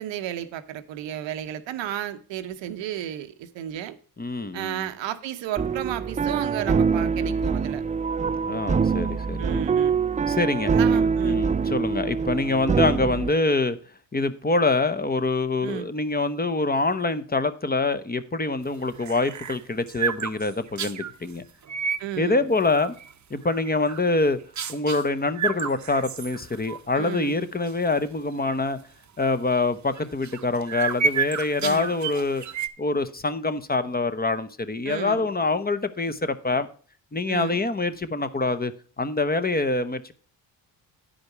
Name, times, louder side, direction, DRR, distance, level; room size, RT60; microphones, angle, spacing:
voice 1, 0.0-4.0 4.5-7.8 9.4-10.0 10.7-11.4 15.6-15.9 22.0-22.5 27.0-27.4 31.6-31.9 34.8-35.3 37.3-37.6, right 11 dB, 80° right, 0.9 m, -33 dB
voice 2, 4.2-4.8 8.4-9.5 10.3-10.7 11.2-13.8 14.1-21.4 22.2-22.9 23.3-24.4 24.7-28.8 29.2-32.4 32.8-36.7 37.1-38.7 39.0-40.1, left 3 dB, 20° left, 0.9 m, -25 dB
sound 1, 5.6-13.3, right 5 dB, 20° right, 0.3 m, -24 dB
sound 2, 18.7-21.1 21.6-22.1 22.5-23.1 23.5-24.1 24.6-25.0 25.3-26.8 27.2-27.3 27.7-27.9 28.4-28.5 30.0-32.7, right 6 dB, 40° right, 0.8 m, -30 dB
9.6 x 5.1 x 5.9 m
supercardioid pair, 65°, 44 cm